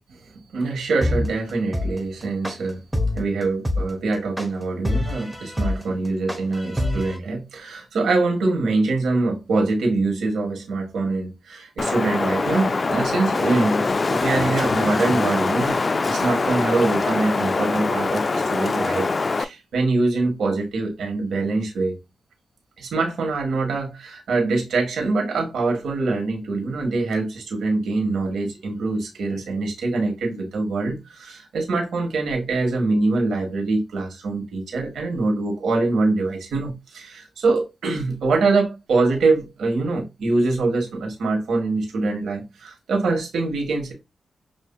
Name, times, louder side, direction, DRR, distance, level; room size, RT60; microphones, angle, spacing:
voice 1, 0.5-2.8 3.2-19.1 19.3-21.9 22.8-43.9, right 3 dB, 90° right, 1.4 m, -24 dB
sound 1, 1.0-7.2, left 1 dB, ahead, 0.8 m, -25 dB
Wind, 11.8-19.4, left 3 dB, 45° left, 0.3 m, -23 dB
6.3 x 2.6 x 2.2 m
cardioid pair, 65°, 0 cm